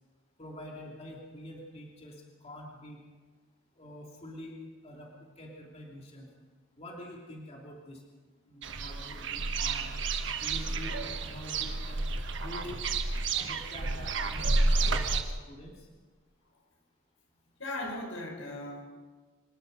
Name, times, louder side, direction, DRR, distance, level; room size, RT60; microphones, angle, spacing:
voice 1, 0.4-3.0 3.8-4.6 4.8-6.3 6.8-8.0 8.5-10.0 10.3-12.1 12.4-12.8 13.3-15.9, left 1 dB, 30° left, -1 dB, 2.9 m, -46 dB
sound 1, 8.6-15.2, right 3 dB, 65° right, 1.4 m, -30 dB
voice 2, 17.6-18.8, left 1 dB, 80° left, 1 dB, 5.2 m, -37 dB
25.0 x 19.5 x 5.3 m, 1.4 s
head